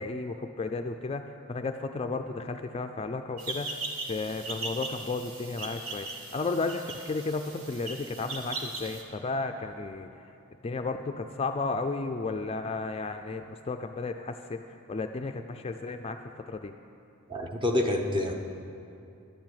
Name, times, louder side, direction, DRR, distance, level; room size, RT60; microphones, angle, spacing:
voice 1, 0.0-3.7 4.1-10.2 10.6-14.6 14.9-16.7, left 3 dB, 25° left, 6 dB, 0.4 m, -33 dB
sound 1, 3.4-9.0, right 3 dB, 65° right, 1.5 m, -39 dB
voice 2, 17.3-18.3, left 1 dB, 20° right, 3 dB, 0.9 m, -27 dB
12.0 x 7.5 x 9.3 m, 2.7 s
head